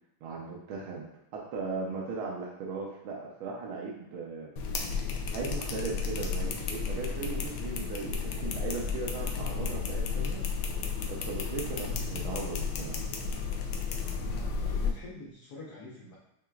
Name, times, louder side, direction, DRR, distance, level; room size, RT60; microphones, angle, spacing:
voice 1, 0.2-1.1 1.3-4.5 5.3-10.4 11.1-13.0, right 4 dB, 85° right, -3 dB, 1.6 m, -37 dB
sound 1, 4.6-14.9, left 5 dB, 80° left, 1.4 m, -33 dB
voice 2, 11.8-12.2 14.2-16.2, equal, 60° left, -7 dB, 1.3 m, -45 dB
7.7 x 2.9 x 2.4 m, 0.84 s
omnidirectional pair, 2.2 m